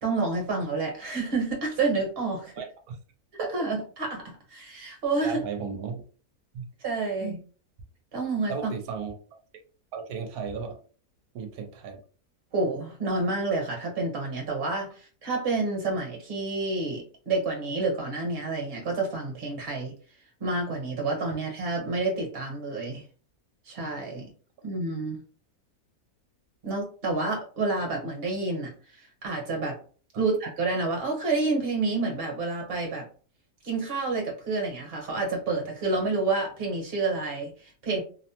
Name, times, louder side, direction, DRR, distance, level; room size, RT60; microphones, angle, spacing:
voice 1, 0.0-2.5 3.3-5.4 6.8-7.4 8.1-8.7 12.5-19.9 20.4-23.0 23.7-24.3 24.6-25.2 26.6-28.7 29.2-29.8 30.2-33.1 33.6-38.0, right 3 dB, 45° right, 1 dB, 1.1 m, -29 dB
voice 2, 2.6-3.0 5.2-6.0 6.5-6.6 7.2-7.4 8.5-9.4 9.9-10.8 11.3-12.0, right 6 dB, 75° right, 4 dB, 1.0 m, -35 dB
2.7 x 2.0 x 2.8 m, 0.40 s
omnidirectional pair, 1.6 m